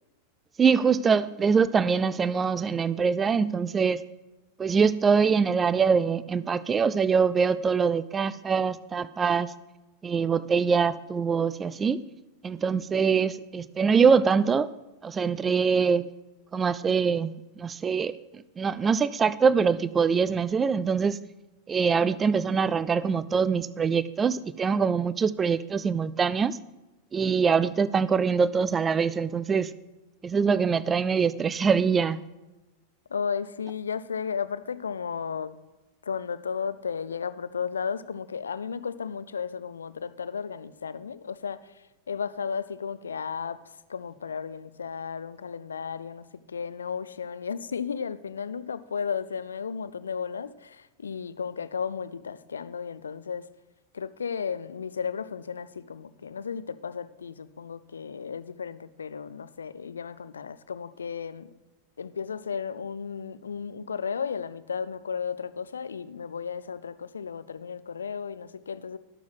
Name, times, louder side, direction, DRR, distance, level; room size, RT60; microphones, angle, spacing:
voice 1, 0.6-4.0 4.6-9.5 10.0-12.0 12.4-14.7 15.0-16.1 16.5-18.1 18.6-21.2 21.7-26.6 27.1-29.7 30.2-32.2, right 6 dB, 20° right, 0.4 m, -24 dB
voice 2, 33.1-35.6 36.0-41.7 42.1-53.5 53.9-61.5 62.0-69.0, left 6 dB, 70° left, 0.4 m, -34 dB
11.5 x 7.0 x 6.0 m
figure-of-eight pair, 90°, 0 cm